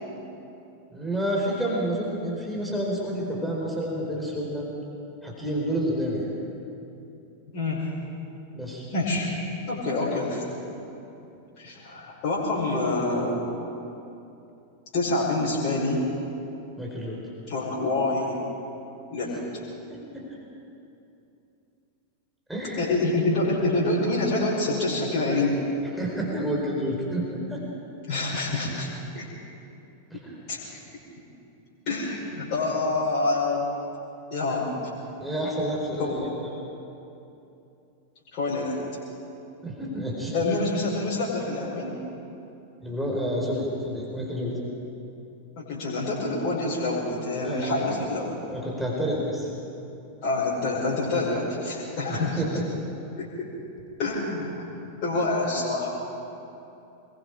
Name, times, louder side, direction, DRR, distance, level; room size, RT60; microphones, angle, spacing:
voice 1, 0.9-4.7 5.2-6.3 8.5-8.8 16.8-17.2 19.9-20.2 22.5-22.8 26.0-27.6 30.1-30.3 35.2-36.5 39.6-40.6 42.8-44.5 47.4-48.0 48.5-49.5 52.1-52.6, equal, ahead, -3 dB, 4.7 m, -29 dB
voice 2, 8.9-9.3 9.7-10.5 11.6-13.4 14.9-16.0 17.5-18.4 19.1-19.4 22.8-25.6 28.1-28.9 29.1-29.2 30.5-30.6 31.9-33.6 34.3-34.9 36.0-36.1 38.3-38.8 40.3-41.9 45.6-48.4 50.2-52.4 53.2-53.5 54.0-54.7 55.0-56.0, left 2 dB, 45° left, -8 dB, 5.6 m, -26 dB
25.0 x 22.0 x 4.9 m, 2.8 s
figure-of-eight pair, 90°, 0 cm